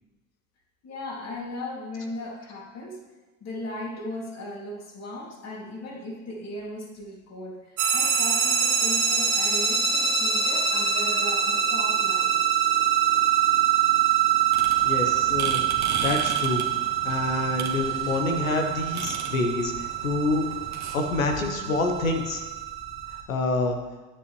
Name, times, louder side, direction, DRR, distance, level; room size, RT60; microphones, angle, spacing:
voice 1, 0.8-3.0 3.4-12.4, left 1 dB, 40° left, -2 dB, 2.6 m, -37 dB
sound 1, 7.8-23.2, right 8 dB, 65° right, 1.6 m, -25 dB
sound 2, 14.5-20.9, right 5 dB, 45° right, 1.5 m, -36 dB
voice 2, 14.8-15.6 16.0-16.6 17.0-20.5 20.9-22.4 23.3-23.8, left 3 dB, 90° left, 4 dB, 1.3 m, -27 dB
9.7 x 9.1 x 3.2 m, 1.2 s
hypercardioid pair, 75°, 40 cm